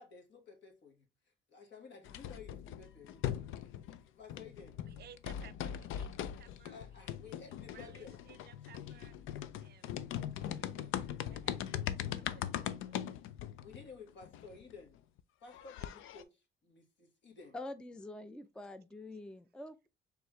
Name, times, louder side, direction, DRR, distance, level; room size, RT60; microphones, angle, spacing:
voice 1, 0.0-4.8 6.7-8.2 13.6-15.0 15.4-17.6, left 5 dB, 65° left, 1.7 m, -54 dB
sound 1, 2.0-4.0 4.3-14.7 15.2-15.3 15.5-16.2, left 10 dB, 90° left, 0.5 m, -40 dB
voice 2, 4.9-6.1 6.4-6.8 7.7-9.1 9.6-10.1 10.4-11.0 11.3-13.0, right 10 dB, 55° right, 0.5 m, -59 dB
voice 3, 17.5-19.9, left 2 dB, 5° left, 0.4 m, -46 dB
4.5 x 3.5 x 3.1 m
cardioid pair, 90°, 20 cm